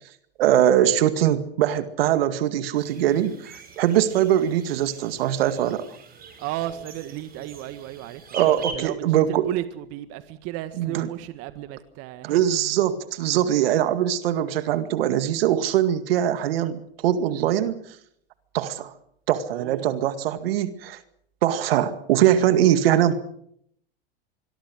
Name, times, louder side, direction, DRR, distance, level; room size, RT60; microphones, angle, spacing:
voice 1, 0.4-5.9 8.3-9.5 10.8-11.1 12.2-17.8 18.5-18.9 19.3-21.0 21.4-23.2, right 11 dB, 65° right, 2.1 m, -22 dB
sound 1, 2.7-8.7, right 5 dB, 30° right, 6.1 m, -43 dB
voice 2, 6.4-9.0 9.3-12.4 19.5-20.1, right 14 dB, 50° right, 1.8 m, -34 dB
25.5 x 22.5 x 6.4 m
hypercardioid pair, 95°, 31 cm